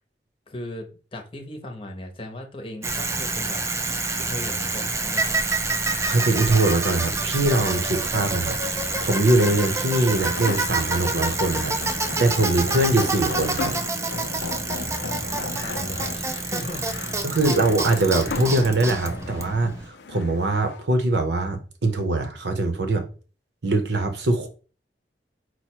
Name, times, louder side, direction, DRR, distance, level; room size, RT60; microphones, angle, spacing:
voice 1, 0.5-3.6 4.2-5.4 15.0-17.4, left 1 dB, 30° left, 0.8 m, -37 dB
Bicycle, 2.8-19.9, right 3 dB, 15° right, 0.4 m, -27 dB
voice 2, 6.0-8.6 9.0-11.7 12.2-13.7 17.2-23.1 23.6-24.5, right 2 dB, 70° right, 0.8 m, -22 dB
sound 1, 7.1-20.8, left 4 dB, 75° left, 0.5 m, -37 dB
4.5 x 2.2 x 4.4 m
head